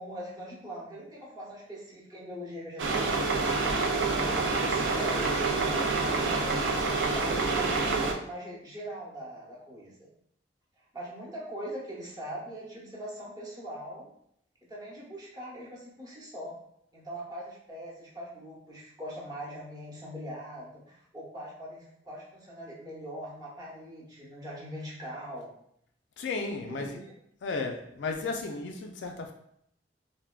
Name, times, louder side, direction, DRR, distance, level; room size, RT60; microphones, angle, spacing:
voice 1, 0.0-6.6 7.0-10.1 10.9-14.1 14.7-16.6 16.9-25.5 26.7-27.1, equal, 25° right, -5 dB, 0.8 m, -41 dB
sound 1, 2.8-8.1, right 3 dB, 90° right, 0.4 m, -27 dB
voice 2, 26.2-27.0 27.4-29.3, left 3 dB, 80° left, 3 dB, 0.3 m, -34 dB
3.3 x 2.1 x 2.3 m, 0.73 s
head